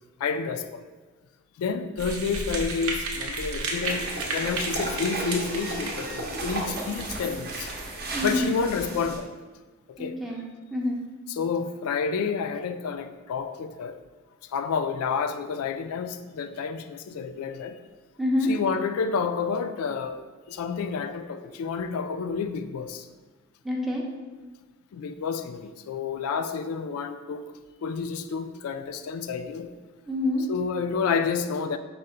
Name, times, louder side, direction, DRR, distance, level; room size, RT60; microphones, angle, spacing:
voice 1, 0.2-0.8 1.6-7.7 8.2-9.3 9.9-10.2 11.3-13.9 14.5-17.8 18.5-20.2 20.5-23.1 24.9-27.5 27.8-29.7 30.5-31.8, left 5 dB, 80° left, 10 dB, 0.3 m, -29 dB
sound 1, 2.0-8.5, right 3 dB, 85° right, 0.6 m, -34 dB
sound 2, 3.8-9.2, right 2 dB, 45° right, 0.6 m, -34 dB
voice 2, 8.1-8.5 10.0-10.4 10.7-11.0 18.2-18.5 23.6-24.1 30.1-30.5, left 1 dB, ahead, -2 dB, 0.4 m, -26 dB
5.4 x 2.1 x 3.8 m, 1.3 s
head